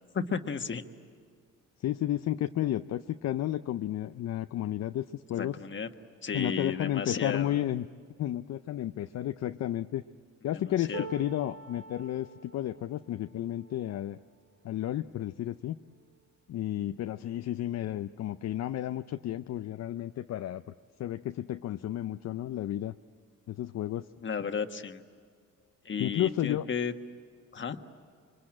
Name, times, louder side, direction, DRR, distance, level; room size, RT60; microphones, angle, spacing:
voice 1, 0.1-0.8 5.3-5.9 6.2-7.5 10.5-11.1 24.2-25.0 25.8-26.9 27.5-27.8, left 6 dB, 40° left, 7 dB, 1.5 m, -33 dB
voice 2, 1.8-5.6 6.3-7.9 8.2-10.0 10.4-14.2 14.6-15.8 16.5-20.6 21.0-22.9 23.5-24.1 26.0-26.7, left 12 dB, 60° left, 9 dB, 0.6 m, -32 dB
sound 1, 10.9-17.1 17.7-17.9 18.1-18.9 19.9-20.0, right 6 dB, 75° right, 2.7 m, -49 dB
27.0 x 23.5 x 8.8 m, 2.1 s
cardioid pair, 90°, 30 cm